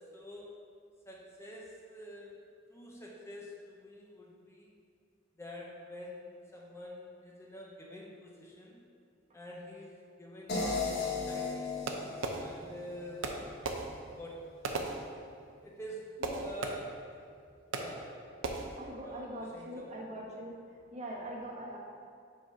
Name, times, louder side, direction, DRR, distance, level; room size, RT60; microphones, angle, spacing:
voice 1, 0.1-0.5 1.1-2.4 2.7-4.7 5.4-6.3 6.5-8.8 9.3-11.7 12.3-13.3 14.1-15.0 15.6-16.0 16.4-16.8 17.8-18.1 19.0-19.9, equal, 15° left, -3 dB, 0.6 m, -47 dB
sound 1, 10.5-13.6, left 4 dB, 60° left, 1.2 m, -36 dB
Fireworks, 11.9-12.9 13.2-15.6 16.2-17.1 17.7-18.2 18.4-18.9, right 3 dB, 75° right, 0.6 m, -38 dB
voice 2, 18.8-20.5 20.9-21.8, equal, 35° right, -3 dB, 1.0 m, -42 dB
5.1 x 3.9 x 5.2 m, 2.3 s
head